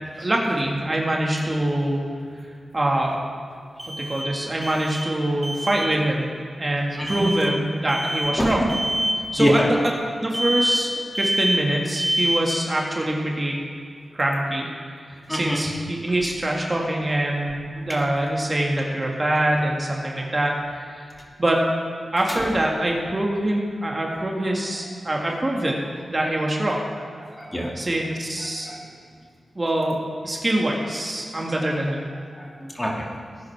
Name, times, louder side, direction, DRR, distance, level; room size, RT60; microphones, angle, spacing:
voice 1, 0.2-2.0 2.7-3.2 4.0-6.3 6.6-8.6 9.3-9.6 10.2-10.9 11.2-13.6 14.1-14.7 15.1-20.6 20.9-21.0 21.4-21.6 22.1-25.8 26.1-26.9 27.8-28.7 29.6-30.0 30.2-32.1, right 1 dB, 35° right, -1 dB, 2.0 m, -24 dB
sound 1, 0.5-0.6 3.8-4.4 4.6-5.2 5.4-5.9 7.1-7.6 7.9-8.4 8.7-9.2 10.3-10.9 11.1-11.7 12.0-12.5, right 1 dB, 15° right, 2.0 m, -26 dB
voice 2, 6.9-7.5 8.4-8.6 9.4-9.7 15.3-15.6 17.9-18.0 20.2-20.3 22.3-22.5 27.2-27.7 28.6-28.8 32.4-33.1, equal, 20° left, -2 dB, 2.5 m, -25 dB
18.0 x 9.9 x 3.6 m, 2.3 s
cardioid pair, 60°, 0 cm